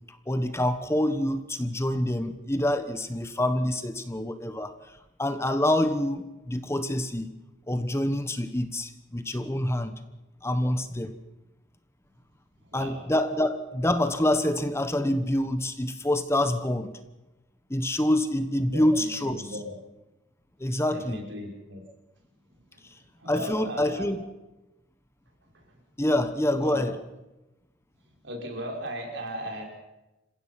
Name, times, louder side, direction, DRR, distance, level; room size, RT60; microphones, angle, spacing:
voice 1, 0.1-7.3 7.7-9.9 10.4-11.1 12.7-17.0 17.7-19.5 20.6-21.2 23.3-24.2 26.0-27.0, left 1 dB, 15° left, 10 dB, 1.1 m, -26 dB
voice 2, 12.7-13.0 18.7-19.8 20.9-21.8 22.7-22.9 23.2-24.1 25.5-25.6 26.6-26.8 28.2-29.6, equal, 65° right, 1 dB, 5.8 m, -37 dB
28.0 x 16.5 x 5.9 m, 1.0 s
head